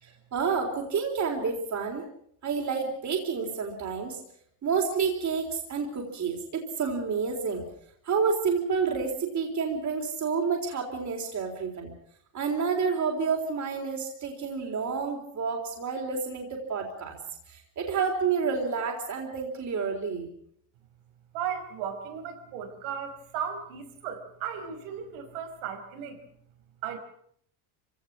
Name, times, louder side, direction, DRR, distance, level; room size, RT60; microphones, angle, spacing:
voice 1, 0.0-2.0 2.4-4.2 4.6-7.6 8.0-11.9 12.3-17.2 17.5-20.3, right 5 dB, 35° right, 1 dB, 3.9 m, -29 dB
voice 2, 21.3-26.2 26.8-27.0, right 8 dB, 85° right, 4 dB, 5.1 m, -36 dB
25.5 x 17.0 x 7.5 m, 0.67 s
cardioid pair, 125°, 48 cm